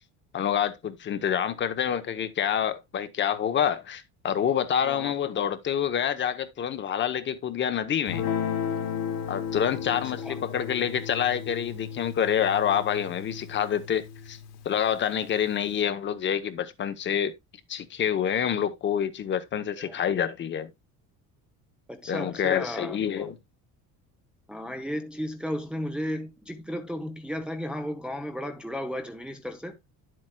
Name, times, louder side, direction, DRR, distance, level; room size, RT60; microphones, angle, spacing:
voice 1, 0.3-8.3 9.3-14.4 14.6-17.3 17.7-20.7 22.1-23.4, left 9 dB, 30° left, 0.8 m, -27 dB
voice 2, 4.8-5.1 10.2-10.4 19.8-20.0 21.9-23.3 24.5-29.8, equal, 5° right, 0.6 m, -34 dB
Guitar, 8.1-14.7, left 7 dB, 65° left, 2.2 m, -34 dB
10.5 x 7.6 x 2.2 m
cardioid pair, 165°, 36 cm